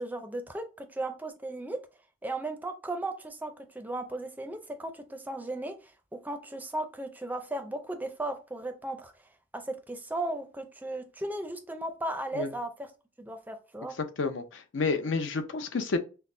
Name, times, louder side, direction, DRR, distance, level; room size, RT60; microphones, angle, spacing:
voice 1, 0.0-1.8 2.2-5.7 6.1-9.1 9.5-12.9 13.2-13.9, right 2 dB, 10° right, 0.5 m, -36 dB
voice 2, 14.0-16.0, left 4 dB, 70° left, 0.6 m, -30 dB
5.6 x 2.1 x 2.6 m
head